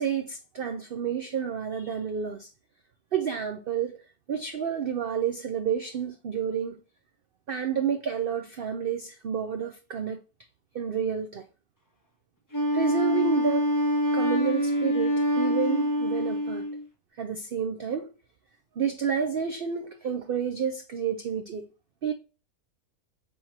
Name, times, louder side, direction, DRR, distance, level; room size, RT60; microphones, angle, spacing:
voice 1, 0.0-2.5 3.1-4.0 4.3-6.8 7.5-10.2 10.7-11.5 12.7-13.7 14.1-16.7 17.2-18.1 18.8-21.7 22.0-22.1, right 7 dB, 70° right, 0.5 m, -30 dB
Wind instrument woodwind instrument, 12.5-16.8, equal, 15° left, 0.7 m, -25 dB
4.6 x 3.5 x 2.8 m
omnidirectional pair, 1.6 m